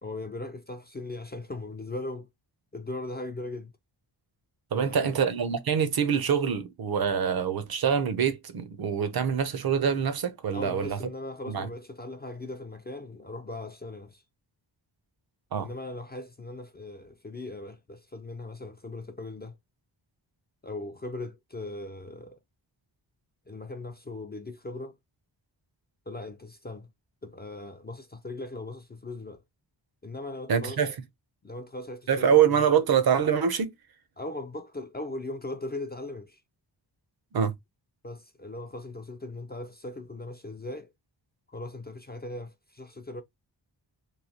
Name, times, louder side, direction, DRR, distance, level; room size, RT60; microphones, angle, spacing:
voice 1, 0.0-2.3 2.7-3.7 4.7-5.2 10.5-14.2 15.6-19.6 20.6-22.4 23.5-25.0 26.1-26.9 27.2-29.4 30.0-30.8 31.4-32.7 34.2-36.4 38.0-40.9 41.5-43.2, left 2 dB, 25° left, 0.3 m, -39 dB
voice 2, 4.7-11.0 11.5-11.7 15.5-15.7 30.5-30.9 32.1-33.7 37.3-37.5, right 7 dB, 55° right, 0.6 m, -25 dB
3.1 x 2.7 x 2.7 m
wide cardioid pair, 155°, 45 cm